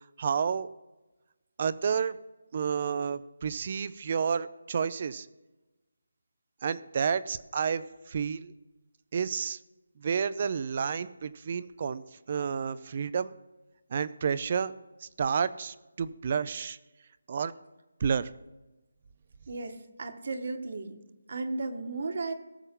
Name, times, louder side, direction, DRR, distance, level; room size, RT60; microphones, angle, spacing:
voice 1, 0.2-0.7 1.6-2.2 2.5-5.3 6.6-8.5 9.1-9.6 10.0-12.0 12.3-13.3 13.9-14.7 15.0-16.8 17.3-17.5 18.0-18.3, right 6 dB, 35° right, 16 dB, 0.5 m, -30 dB
voice 2, 19.5-21.0 21.3-22.3, right 3 dB, 50° right, 6 dB, 1.4 m, -35 dB
18.5 x 6.9 x 3.8 m, 1.1 s
figure-of-eight pair, 165°, 0 cm